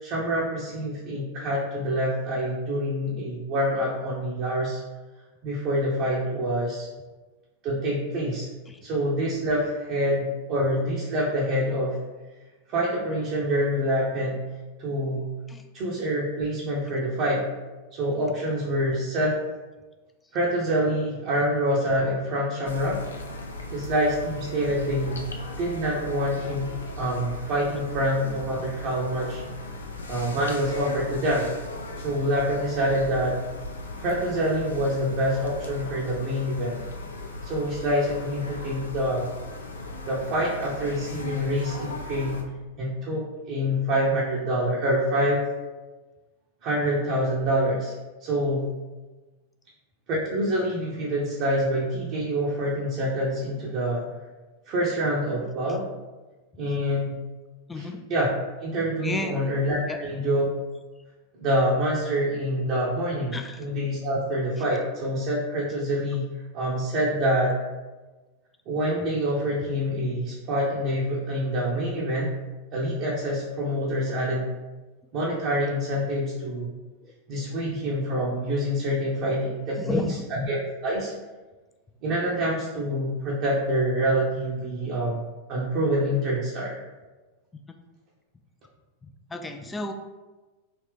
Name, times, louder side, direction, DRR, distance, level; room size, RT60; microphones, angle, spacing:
voice 1, 0.0-4.8 5.4-6.9 7.6-8.5 8.8-12.0 12.7-14.5 14.8-15.3 15.7-17.5 17.9-19.4 20.3-23.0 23.7-25.3 25.6-26.7 27.0-29.4 30.1-31.5 32.0-33.4 34.0-36.8 37.4-39.3 40.0-42.4 42.8-45.5 46.6-47.9 48.2-48.7 50.1-54.1 54.7-55.8 56.6-57.1 57.7-58.3 58.6-60.5 61.4-66.3 66.5-67.5 68.7-72.3 72.7-74.5 75.1-76.7 77.3-80.0 80.3-81.1 82.0-85.2 85.5-86.8, equal, 40° right, -5 dB, 0.7 m, -26 dB
sound 1, 22.6-42.4, left 1 dB, 75° left, 0.4 m, -37 dB
voice 2, 59.0-59.3 59.9-60.0 63.3-63.6 77.0-77.1 79.8-80.2 89.3-89.9, left 2 dB, 10° left, 6 dB, 0.3 m, -31 dB
3.3 x 2.8 x 3.3 m, 1.2 s
figure-of-eight pair, 90°, 0 cm